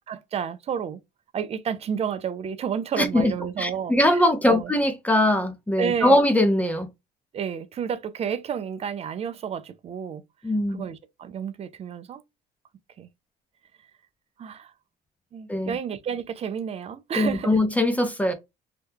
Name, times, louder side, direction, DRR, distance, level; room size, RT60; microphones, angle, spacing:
voice 1, 0.1-1.0 1.3-4.7 5.8-6.2 7.3-10.2 10.7-12.2 13.0-13.1 14.4-14.7 15.3-17.6, right 7 dB, 40° right, 0.4 m, -31 dB
voice 2, 3.0-3.3 3.6-6.9 10.4-10.8 15.5-15.8 17.2-18.3, left 1 dB, 10° left, 0.5 m, -21 dB
2.8 x 2.2 x 3.4 m
cardioid pair, 110°, 17 cm